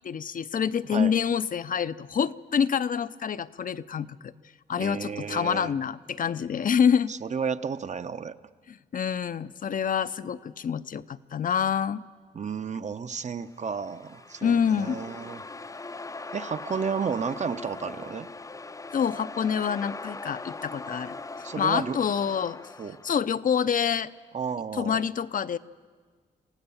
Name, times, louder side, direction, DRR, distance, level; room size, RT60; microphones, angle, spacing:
voice 1, 0.0-4.3 4.7-7.1 8.7-12.0 14.4-15.0 18.9-21.2 21.6-22.6 23.0-24.1 24.7-25.6, left 7 dB, 55° left, 13 dB, 0.7 m, -27 dB
voice 2, 4.8-5.7 7.1-8.3 12.3-15.4 16.3-18.3 21.4-22.0 22.8-23.0 24.3-25.0, right 6 dB, 45° right, 11 dB, 0.9 m, -32 dB
sound 1, 13.5-23.3, left 3 dB, 20° left, 0.6 m, -41 dB
26.5 x 16.5 x 7.2 m, 1.5 s
cardioid pair, 65°, 17 cm